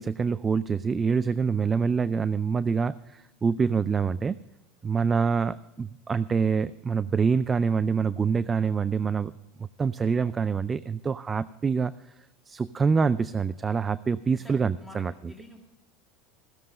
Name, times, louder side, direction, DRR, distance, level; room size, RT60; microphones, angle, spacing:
voice 1, 0.0-4.4 4.8-9.3 9.6-11.9 12.5-15.1, right 5 dB, 25° right, 17 dB, 0.3 m, -26 dB
voice 2, 14.3-15.6, left 1 dB, ahead, -1 dB, 1.9 m, -49 dB
16.0 x 7.5 x 6.6 m, 0.98 s
supercardioid pair, 100°, 0 cm